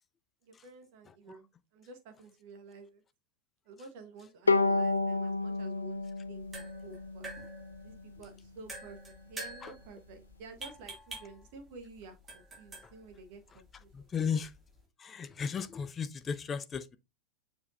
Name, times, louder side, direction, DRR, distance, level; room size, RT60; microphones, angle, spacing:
voice 1, 0.4-1.5 1.7-3.0 3.6-6.0 6.3-7.3 7.8-13.9 14.2-14.3, right 3 dB, 50° right, 1.3 m, -51 dB
Bowed string instrument, 4.5-7.8, left 3 dB, 80° left, 0.5 m, -30 dB
sound 1, 6.2-14.9, right 2 dB, 15° right, 2.6 m, -49 dB
voice 2, 13.9-14.5 15.0-17.0, left 6 dB, 20° left, 0.6 m, -35 dB
7.0 x 5.2 x 2.7 m
figure-of-eight pair, 90°, 0 cm